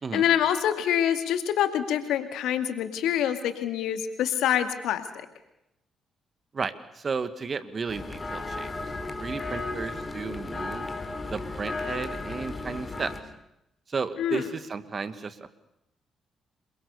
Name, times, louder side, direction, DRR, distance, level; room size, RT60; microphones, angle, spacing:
voice 1, 0.1-5.3 14.2-14.5, left 10 dB, 70° left, 8 dB, 2.2 m, -26 dB
voice 2, 6.5-8.7 9.2-10.9 11.3-13.1 13.9-15.5, right 5 dB, 45° right, 12 dB, 2.0 m, -33 dB
sound 1, 7.9-13.2, left 3 dB, 30° left, 4.1 m, -34 dB
27.5 x 23.0 x 7.0 m, 0.85 s
hypercardioid pair, 45°, 0 cm